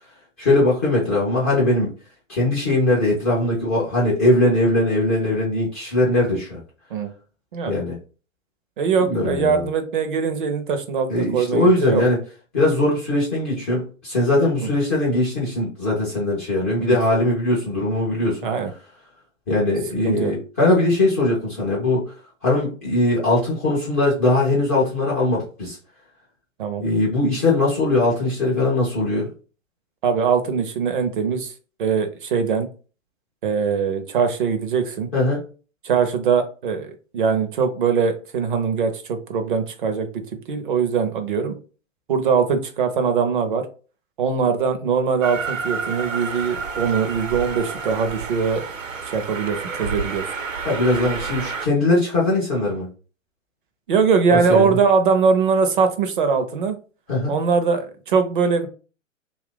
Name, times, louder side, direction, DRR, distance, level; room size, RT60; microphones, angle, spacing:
voice 1, 0.4-1.9 2.3-6.6 7.7-8.0 9.0-9.7 11.1-12.2 12.5-18.4 19.5-22.1 22.4-25.8 26.8-29.3 35.1-35.4 50.6-52.9 54.3-54.8 57.1-57.3, left 2 dB, 10° left, -6 dB, 0.4 m, -20 dB
voice 2, 8.8-12.0 16.8-17.0 18.4-18.7 20.0-20.3 26.6-26.8 30.0-31.5 31.8-32.7 33.4-35.1 35.8-40.1 40.5-41.6 42.1-43.7 44.2-48.6 49.1-50.3 53.9-56.8 57.3-58.7, right 5 dB, 40° right, 7 dB, 0.6 m, -21 dB
Train, 45.2-51.7, right 5 dB, 75° right, 1.0 m, -30 dB
2.8 x 2.4 x 3.7 m, 0.36 s
figure-of-eight pair, 130°, 39 cm